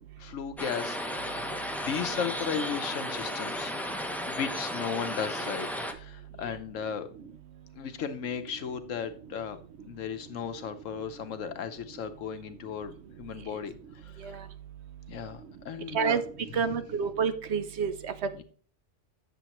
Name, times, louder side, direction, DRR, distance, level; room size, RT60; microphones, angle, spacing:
voice 1, 0.2-1.4 1.8-3.7 4.3-7.1 7.8-9.6 9.9-12.9 13.2-14.4 15.1-16.2 18.3-18.4, left 7 dB, 85° left, 9 dB, 1.2 m, -35 dB
sound 1, 0.6-5.9, equal, ahead, 0.5 m, -34 dB
voice 2, 16.5-18.1, right 6 dB, 65° right, 10 dB, 0.9 m, -28 dB
9.3 x 7.1 x 3.0 m, 0.43 s
omnidirectional pair, 1.3 m